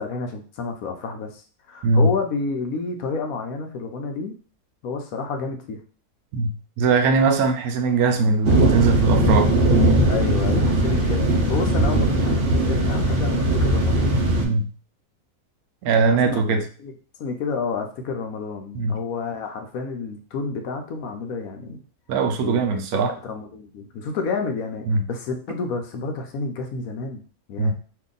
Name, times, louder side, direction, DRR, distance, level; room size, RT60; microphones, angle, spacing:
voice 1, 0.0-4.3 4.8-5.8 10.1-14.2 16.1-16.4 16.8-16.9 17.2-21.8 22.4-22.6 23.2-27.2 27.5-27.7, left 4 dB, 70° left, 4 dB, 1.0 m, -30 dB
voice 2, 1.8-2.1 6.3-9.5 9.8-10.0 14.4-14.7 15.8-16.7 18.7-19.0 22.1-23.1 24.9-25.0 27.6-27.7, right 3 dB, 75° right, 6 dB, 1.0 m, -21 dB
sound 1, 8.4-14.4, right 1 dB, 45° right, 0.9 m, -19 dB
2.8 x 2.6 x 3.8 m, 0.39 s
omnidirectional pair, 1.6 m